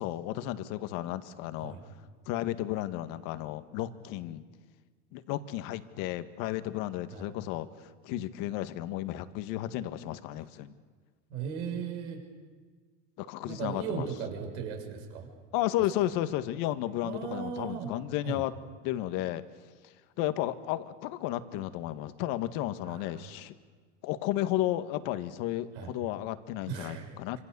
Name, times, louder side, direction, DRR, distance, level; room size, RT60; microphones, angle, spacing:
voice 1, 0.0-1.8 2.3-4.4 5.1-10.7 13.2-14.1 15.5-18.5 18.8-19.4 20.2-23.5 24.0-27.4, left 14 dB, 65° left, 11 dB, 1.8 m, -33 dB
voice 2, 11.3-12.2 13.4-15.3 17.0-17.9 18.2-18.4 22.8-23.1 25.7-25.9 26.6-27.4, right 7 dB, 75° right, 3 dB, 6.5 m, -37 dB
27.5 x 26.0 x 6.9 m, 1.5 s
supercardioid pair, 95°, 35 cm